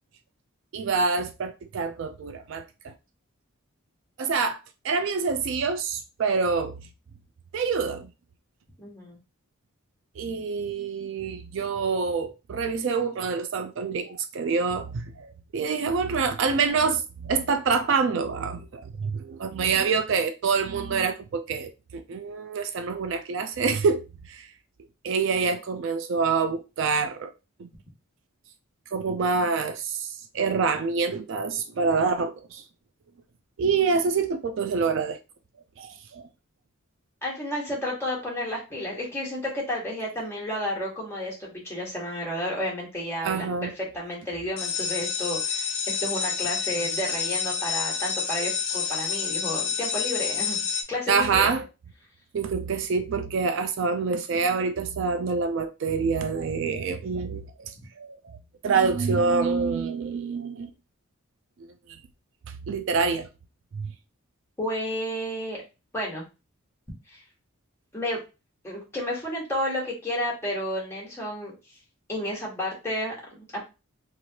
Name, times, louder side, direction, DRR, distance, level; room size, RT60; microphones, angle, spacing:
voice 1, 0.7-2.6 4.2-4.6 4.8-6.7 7.5-8.1 10.2-24.5 25.0-27.3 27.6-27.7 28.9-30.1 30.3-32.6 33.6-35.2 35.8-36.2 43.2-43.7 51.1-51.6 52.3-58.2 58.6-60.7 62.7-63.3 63.7-63.9, right 5 dB, 60° right, 0.3 m, -26 dB
voice 2, 8.8-9.2 37.2-51.5 64.6-65.6 65.9-66.2 67.1-67.2 67.9-68.2 68.6-71.5 72.1-73.6, left 1 dB, 10° left, 1.2 m, -31 dB
sound 1, 44.6-50.8, left 7 dB, 65° left, 0.8 m, -28 dB
3.1 x 2.5 x 2.8 m
head